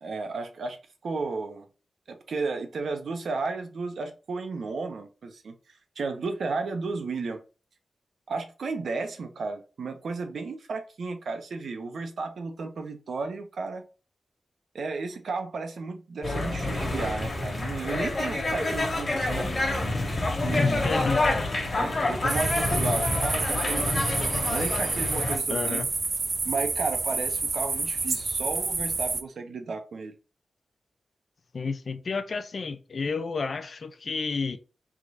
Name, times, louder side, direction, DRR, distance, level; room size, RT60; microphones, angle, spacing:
voice 1, 0.0-1.7 2.1-5.6 6.0-7.4 8.3-13.8 14.7-19.5 20.4-20.9 21.8-25.8 26.4-30.1, right 4 dB, 75° right, 0.8 m, -33 dB
sound 1, 16.2-25.4, left 2 dB, 35° left, 1.4 m, -27 dB
voice 2, 20.6-21.3 25.5-25.9 31.5-34.6, left 4 dB, 50° left, 0.5 m, -30 dB
sound 2, 22.3-29.2, right 3 dB, 40° right, 0.5 m, -29 dB
3.6 x 2.6 x 4.6 m
wide cardioid pair, 130°, 0 cm